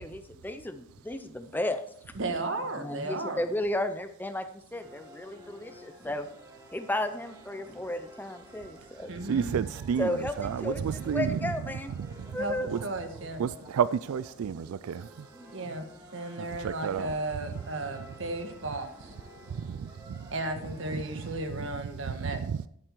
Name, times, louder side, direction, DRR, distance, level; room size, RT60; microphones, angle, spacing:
voice 1, 0.0-1.8 2.8-6.3 6.7-9.1 10.0-11.9 12.3-12.7, left 1 dB, 10° left, 0.5 m, -33 dB
voice 2, 2.1-3.4 9.1-9.5 12.4-13.4 15.5-15.9 16.1-19.1 20.3-22.4, right 2 dB, 65° right, 1.4 m, -34 dB
sound 1, 4.7-21.5, equal, 15° right, 1.9 m, -51 dB
voice 3, 9.2-11.5 12.0-12.4 12.7-12.8 13.4-15.3 16.4-17.1 19.5-20.3 20.9-21.0 22.2-22.6, right 7 dB, 85° right, 0.3 m, -31 dB
11.5 x 7.9 x 4.6 m
head